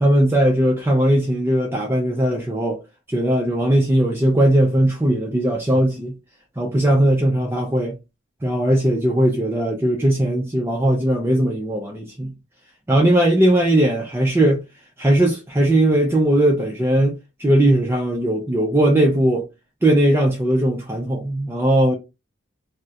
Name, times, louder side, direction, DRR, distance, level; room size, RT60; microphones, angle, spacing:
voice 1, 0.0-2.8 3.1-6.2 6.6-7.9 8.4-12.3 12.9-14.6 15.0-19.5 19.8-22.0, right 1 dB, 10° right, 0.3 m, -18 dB
2.3 x 2.0 x 2.7 m
head